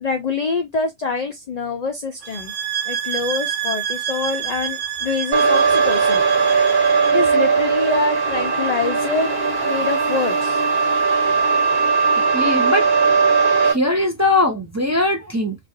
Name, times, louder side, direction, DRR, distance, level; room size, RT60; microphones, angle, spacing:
voice 1, 0.0-2.5 2.9-6.2 7.1-9.4 9.6-10.6, left 4 dB, 75° left, 0.3 m, -25 dB
sound 1, 2.2-7.3, right 9 dB, 75° right, 0.9 m, -28 dB
sound 2, 5.3-13.7, right 5 dB, 55° right, 1.3 m, -18 dB
voice 2, 12.3-12.9 13.6-15.6, left 2 dB, 20° right, 0.5 m, -20 dB
3.0 x 2.4 x 2.6 m
omnidirectional pair, 1.3 m